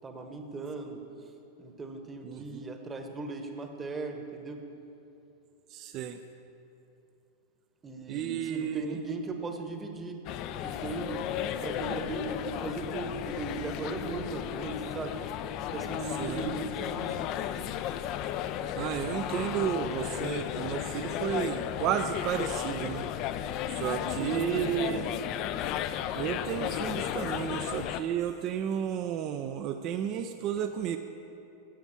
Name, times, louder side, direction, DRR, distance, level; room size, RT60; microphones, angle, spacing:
voice 1, 0.0-1.0 1.6-4.6 7.8-10.2 10.6-11.3 11.6-15.1 15.7-17.2 24.0-25.2, right 3 dB, 15° right, 5 dB, 1.0 m, -38 dB
voice 2, 2.2-2.6 5.7-6.2 8.1-9.0 16.2-16.5 18.8-23.1 23.7-25.0 26.1-31.0, right 9 dB, 40° right, 8 dB, 0.4 m, -32 dB
sound 1, 10.2-28.0, left 10 dB, 40° left, 0.4 m, -34 dB
10.5 x 8.0 x 6.1 m, 2.8 s
figure-of-eight pair, 90°, 0 cm